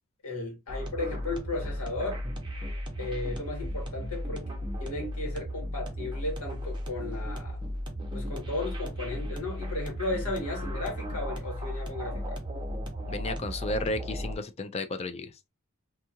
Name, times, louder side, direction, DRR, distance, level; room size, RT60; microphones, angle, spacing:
voice 1, 0.2-2.2 3.0-4.4 4.8-7.6 8.1-12.4, left 2 dB, 85° left, 1.4 m, -35 dB
sound 1, 0.7-14.4, equal, 20° right, 0.7 m, -35 dB
voice 2, 13.1-15.3, left 2 dB, 30° left, 0.4 m, -33 dB
2.6 x 2.4 x 2.8 m
head